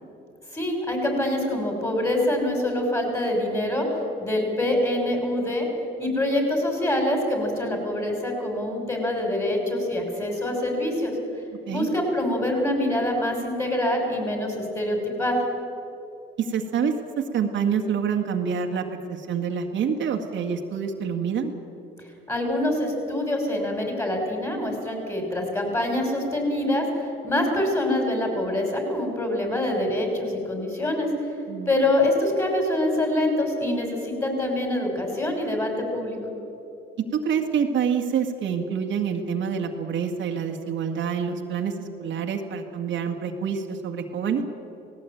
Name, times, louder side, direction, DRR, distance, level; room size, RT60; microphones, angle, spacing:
voice 1, 0.5-3.9 4.2-5.7 6.0-11.1 11.7-15.4 22.3-31.1 31.7-36.2, left 1 dB, 15° left, 2 dB, 6.2 m, -25 dB
voice 2, 16.4-18.8 19.1-21.5 31.5-31.7 37.2-41.7 42.0-44.4, right 7 dB, 70° right, 3 dB, 2.0 m, -27 dB
18.5 x 17.5 x 9.2 m, 2.8 s
cardioid pair, 90°, 20 cm